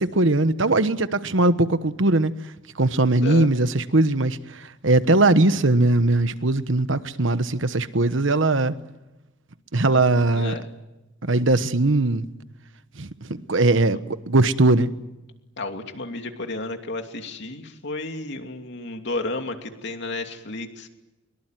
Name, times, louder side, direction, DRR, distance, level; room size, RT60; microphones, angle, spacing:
voice 1, 0.0-2.3 2.8-8.7 9.7-10.5 11.2-12.2 13.0-14.9, right 2 dB, 70° right, 12 dB, 1.2 m, -20 dB
voice 2, 10.3-10.7 15.6-20.9, left 2 dB, 60° left, 5 dB, 2.9 m, -32 dB
23.5 x 23.5 x 9.3 m, 1.0 s
head